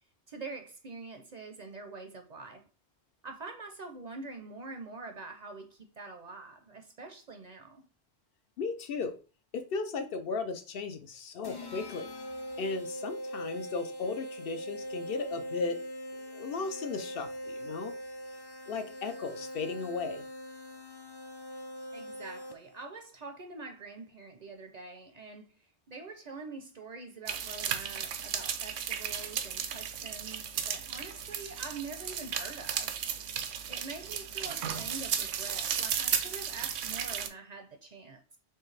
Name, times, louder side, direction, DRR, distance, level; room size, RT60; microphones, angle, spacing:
voice 1, 0.3-2.6 3.2-7.8 21.9-25.5 25.9-32.9 33.7-38.4, right 3 dB, 50° right, 0.6 m, -45 dB
voice 2, 8.6-9.2 9.5-12.1 12.6-15.8 16.3-17.9 18.7-20.2, left 4 dB, 65° left, 0.7 m, -36 dB
sound 1, 11.4-22.8, equal, 40° left, 0.3 m, -41 dB
sound 2, 27.3-37.3, right 8 dB, 85° right, 0.9 m, -34 dB
4.5 x 3.3 x 3.2 m
omnidirectional pair, 1.1 m